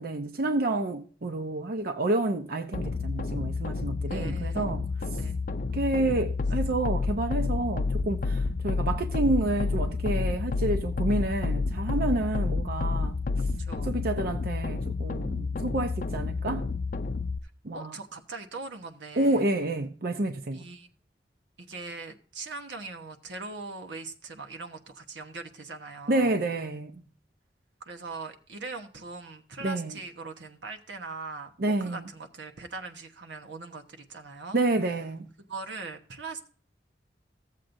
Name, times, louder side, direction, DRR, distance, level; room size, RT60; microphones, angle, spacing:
voice 1, 0.0-4.8 5.7-13.2 13.8-16.7 17.6-17.9 19.2-20.7 26.1-27.0 29.6-29.9 31.6-32.0 34.5-35.3, right 2 dB, 55° right, 0.6 m, -29 dB
sound 1, 2.7-17.4, left 3 dB, 45° left, 0.4 m, -30 dB
voice 2, 4.1-4.8 5.2-5.4 13.6-13.9 17.4-19.5 20.5-20.9 21.6-26.3 27.9-31.5 31.8-34.6 35.5-36.5, right 3 dB, 85° right, 1.1 m, -41 dB
15.5 x 7.5 x 2.6 m
head